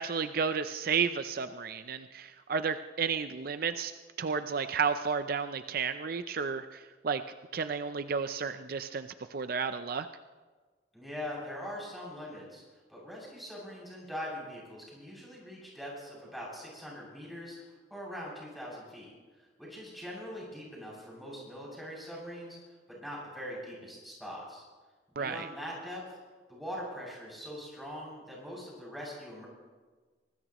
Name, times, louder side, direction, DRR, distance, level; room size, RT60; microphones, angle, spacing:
voice 1, 0.0-3.9 4.2-7.2 7.5-10.1 25.2-25.5, right 6 dB, 55° right, 10 dB, 0.5 m, -32 dB
voice 2, 10.9-12.6 12.9-17.6 17.9-19.1 19.4-24.6 25.2-26.2 26.5-29.5, equal, ahead, -5 dB, 7.2 m, -42 dB
24.0 x 20.0 x 3.0 m, 1.4 s
head